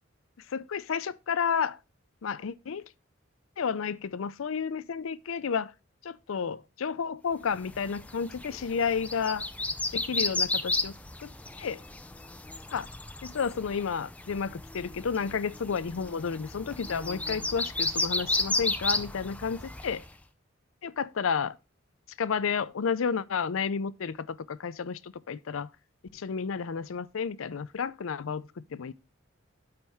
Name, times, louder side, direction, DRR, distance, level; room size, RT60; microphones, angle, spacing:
voice 1, 0.5-1.8 2.2-2.8 3.6-5.7 6.0-9.5 9.9-10.9 11.2-11.3 11.6-11.8 12.7-12.9 13.2-20.0 20.8-21.6 22.2-25.7 26.1-28.9, left 6 dB, 80° left, 0.5 m, -31 dB
sound 1, 7.6-20.1, left 2 dB, 5° left, 0.4 m, -33 dB
12.5 x 4.3 x 3.5 m
head